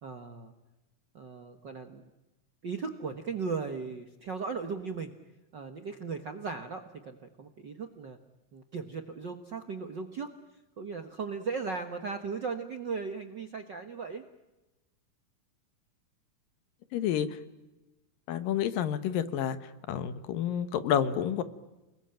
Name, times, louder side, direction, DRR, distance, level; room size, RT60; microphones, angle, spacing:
voice 1, 0.0-0.5 1.1-2.1 2.6-5.1 5.5-8.2 8.5-10.3 10.8-14.2, right 5 dB, 60° right, 6 dB, 1.2 m, -37 dB
voice 2, 16.9-17.4 18.3-19.6 19.9-21.4, left 9 dB, 80° left, 12 dB, 3.0 m, -29 dB
29.5 x 20.5 x 8.9 m, 1.0 s
omnidirectional pair, 3.9 m